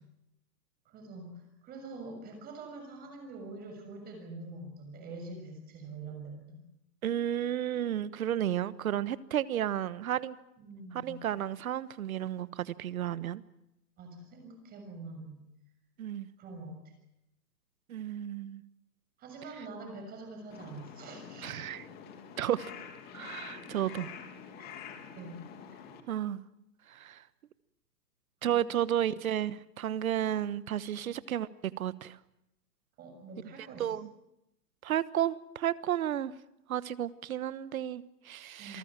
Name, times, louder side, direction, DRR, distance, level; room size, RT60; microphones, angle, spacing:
voice 1, 0.8-6.6 10.6-11.1 14.0-15.4 16.4-16.8 19.2-21.6 23.7-24.0 24.6-25.4 25.7-25.8 28.4-28.6 33.0-33.9 38.6-38.8, right 3 dB, 20° right, 5 dB, 6.6 m, -45 dB
voice 2, 7.0-10.3 11.0-13.4 16.0-16.3 17.9-18.6 21.4-21.9 22.4-22.7 23.1-24.1 26.1-26.4 26.9-27.2 28.4-31.5 31.8-32.2 33.8-34.1 34.8-36.3 36.7-38.8, right 11 dB, 55° right, 16 dB, 1.3 m, -32 dB
Crow, 20.5-26.0, left 7 dB, 20° left, 2.4 m, -47 dB
28.0 x 19.0 x 7.5 m, 0.86 s
hypercardioid pair, 160°, 49 cm